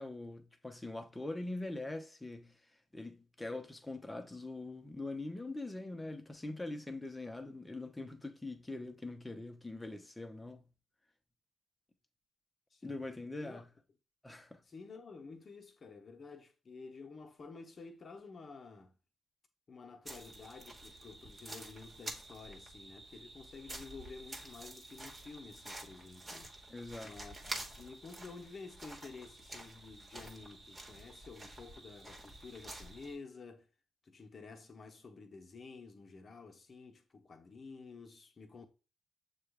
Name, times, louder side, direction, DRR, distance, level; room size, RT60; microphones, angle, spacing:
voice 1, 0.0-10.6 12.8-13.7 14.2-14.6 26.7-27.1, left 2 dB, 15° left, 0.8 m, -43 dB
voice 2, 12.7-13.0 13.4-13.6 14.7-18.9 19.7-26.5 27.0-33.7 34.0-38.7, left 4 dB, 45° left, 0.9 m, -51 dB
sound 1, 20.1-33.2, right 1 dB, 30° right, 1.2 m, -49 dB
6.7 x 2.4 x 3.3 m
cardioid pair, 70°, 0 cm